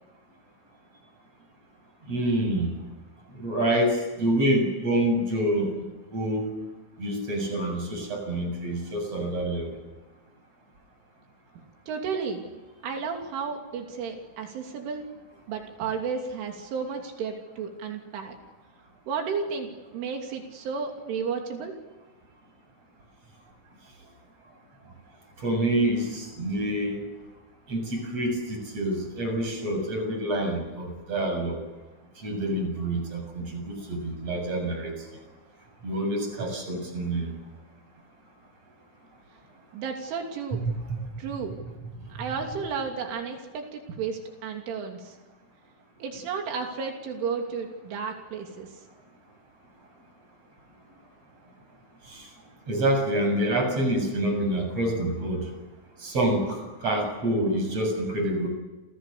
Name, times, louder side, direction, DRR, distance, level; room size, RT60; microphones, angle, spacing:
voice 1, 2.1-2.7 3.4-5.7 6.1-6.5 7.0-9.7 25.4-27.0 27.7-31.6 32.2-34.9 35.8-37.3 40.5-41.0 52.1-52.2 52.7-55.4 56.0-58.5, right 1 dB, 30° right, 4 dB, 8.2 m, -27 dB
voice 2, 11.9-12.6 12.8-15.1 15.5-18.4 19.1-21.8 39.7-40.6 41.2-41.6 42.2-45.2 46.0-48.7, right 5 dB, 85° right, 2 dB, 5.4 m, -33 dB
29.5 x 29.0 x 6.9 m, 1.2 s
omnidirectional pair, 5.4 m